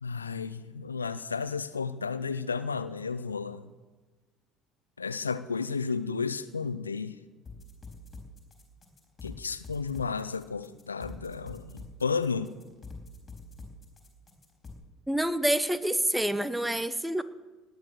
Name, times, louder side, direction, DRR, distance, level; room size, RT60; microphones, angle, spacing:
voice 1, 0.0-3.7 5.0-7.2 9.2-12.5, left 5 dB, 85° left, 15 dB, 0.5 m, -32 dB
sound 1, 7.5-14.7, left 2 dB, 25° left, 4.3 m, -45 dB
voice 2, 15.1-17.2, right 1 dB, 5° right, 15 dB, 1.0 m, -27 dB
19.0 x 9.9 x 6.5 m, 1.3 s
figure-of-eight pair, 60°, 0 cm